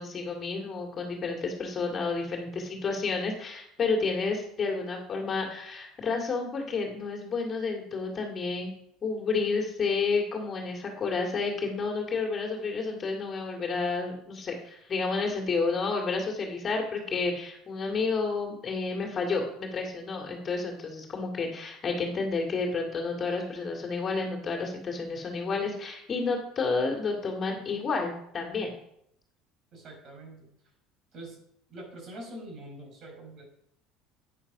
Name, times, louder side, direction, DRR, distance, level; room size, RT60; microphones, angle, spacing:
voice 1, 0.0-8.7 9.0-28.7, left 4 dB, 30° left, 2 dB, 2.2 m, -30 dB
voice 2, 29.7-30.5 31.1-31.4 31.7-33.4, right 1 dB, 45° right, 1 dB, 5.2 m, -44 dB
10.0 x 9.3 x 4.9 m, 0.74 s
supercardioid pair, 120°, 0 cm